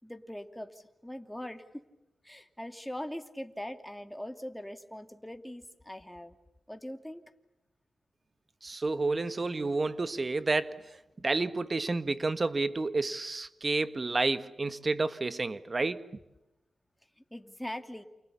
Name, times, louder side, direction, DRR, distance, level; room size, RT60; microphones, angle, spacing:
voice 1, 0.0-1.8 2.2-6.4 6.7-7.2 17.3-18.0, left 1 dB, 5° left, 2.7 m, -41 dB
voice 2, 8.6-16.1, right 3 dB, 40° right, 1.6 m, -30 dB
29.0 x 29.0 x 7.1 m
cardioid pair, 65°, 0 cm